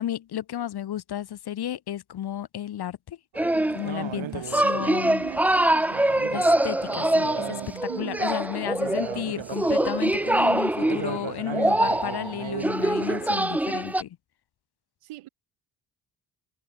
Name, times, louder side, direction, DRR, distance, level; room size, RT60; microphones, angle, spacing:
voice 1, 0.0-3.2 3.7-5.2 6.3-14.2, left 11 dB, 50° left, 0.8 m, -33 dB
sound 1, 3.3-13.5, right 10 dB, 65° right, 2.2 m, -38 dB
sound 2, 3.4-4.0 4.5-14.0, right 1 dB, 5° right, 0.4 m, -24 dB
voice 2, 4.5-6.1 7.9-8.2 15.0-15.3, right 16 dB, 85° right, 1.9 m, -41 dB
supercardioid pair, 50°, 50 cm